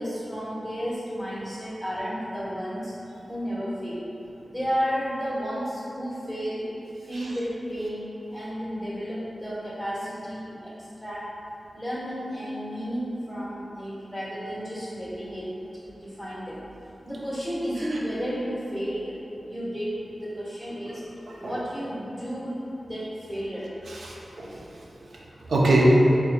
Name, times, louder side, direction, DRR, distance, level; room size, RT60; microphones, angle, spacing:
voice 1, 0.0-2.9 3.3-4.0 4.5-6.6 7.0-11.2 11.7-15.4 15.8-16.6 17.0-19.1 19.4-21.0 21.3-23.7, equal, 5° right, -11 dB, 1.3 m, -32 dB
voice 2, 23.9-24.6 25.4-25.9, right 1 dB, 85° right, -3 dB, 0.4 m, -24 dB
4.3 x 2.6 x 2.2 m, 2.8 s
wide cardioid pair, 105°, 0 cm